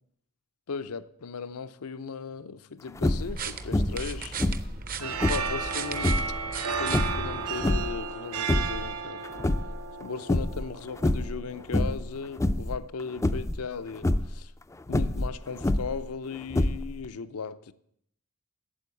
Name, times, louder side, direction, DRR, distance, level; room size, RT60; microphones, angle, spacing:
voice 1, 0.7-4.5 5.0-6.3 6.7-9.2 10.0-14.5 14.9-17.7, left 5 dB, 80° left, 0.6 m, -37 dB
sound 1, 3.0-3.4 3.7-4.1 4.4-5.5 6.0-6.3 6.9-8.0 8.3-8.9 9.2-10.0 10.3-10.7 11.0-11.4 11.7-12.1 12.4-12.8 13.2-13.6 14.0-14.3 14.9-16.0 16.5-17.1, left 1 dB, 15° left, 0.3 m, -26 dB
sound 2, 3.0-7.9, right 5 dB, 40° right, 0.7 m, -38 dB
sound 3, 5.0-12.3, right 5 dB, 90° right, 1.1 m, -34 dB
8.5 x 7.7 x 8.2 m
head